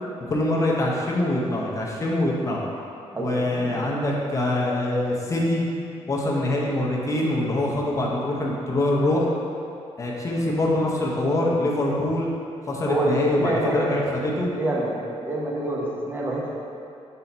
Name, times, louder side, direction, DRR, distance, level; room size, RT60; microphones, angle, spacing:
voice 1, 0.3-2.6 3.2-5.6 6.1-9.3 10.0-12.3 12.6-14.5, left 1 dB, 30° left, -3 dB, 0.8 m, -24 dB
voice 2, 3.1-3.9 12.9-14.0 14.6-16.6, right 1 dB, 20° right, -3 dB, 0.8 m, -27 dB
5.5 x 4.1 x 4.4 m, 2.6 s
cardioid pair, 150°, 11 cm